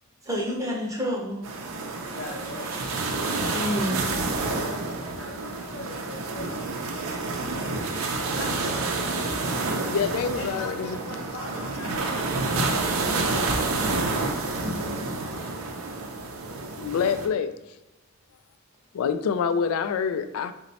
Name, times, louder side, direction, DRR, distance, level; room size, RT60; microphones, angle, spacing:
voice 1, 0.2-1.4 2.8-3.0 3.5-4.1, equal, 15° right, -2 dB, 0.7 m, -29 dB
sound 1, 1.4-17.3, right 3 dB, 75° right, 0.5 m, -29 dB
voice 2, 2.0-2.8 4.4-7.1 8.3-9.6 10.0-12.9, left 1 dB, 55° left, 0 dB, 0.9 m, -41 dB
voice 3, 9.9-11.0 14.9-15.1 15.4-15.5 16.8-17.5 18.9-20.5, left 6 dB, 85° left, 11 dB, 0.3 m, -26 dB
4.0 x 2.1 x 4.0 m, 0.94 s
head